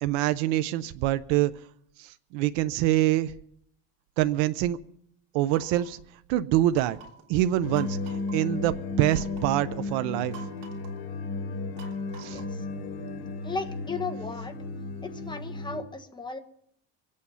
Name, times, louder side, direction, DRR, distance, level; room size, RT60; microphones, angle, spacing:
voice 1, 0.0-1.5 2.0-3.3 4.2-4.8 5.3-6.0 6.3-7.0 7.3-8.0 8.3-10.3 12.2-12.4, right 14 dB, 90° right, 13 dB, 0.7 m, -25 dB
sound 1, 5.5-6.0 6.7-7.3 7.7-8.4 9.1-9.5 10.3-11.0 11.8-12.6, right 6 dB, 55° right, 3.4 m, -47 dB
sound 2, 7.6-15.8, left 3 dB, 70° left, 2.6 m, -34 dB
voice 2, 12.3-12.6 13.4-14.5 15.0-16.4, left 4 dB, 10° left, 6 dB, 1.3 m, -35 dB
24.5 x 8.6 x 5.6 m, 0.68 s
cardioid pair, 140°, 39 cm